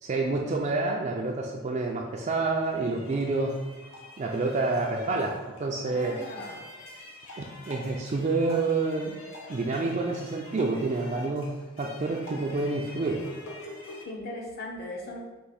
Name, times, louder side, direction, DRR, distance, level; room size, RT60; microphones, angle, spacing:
voice 1, 0.0-3.5 4.2-6.2 7.4-9.1 9.5-13.2, right 3 dB, 35° right, 0 dB, 0.3 m, -28 dB
sound 1, 1.7-14.1, left 2 dB, 85° left, 1.0 m, -46 dB
voice 2, 5.8-6.6 14.0-15.2, left 2 dB, 50° left, -2 dB, 0.9 m, -38 dB
4.7 x 2.5 x 4.0 m, 1.2 s
head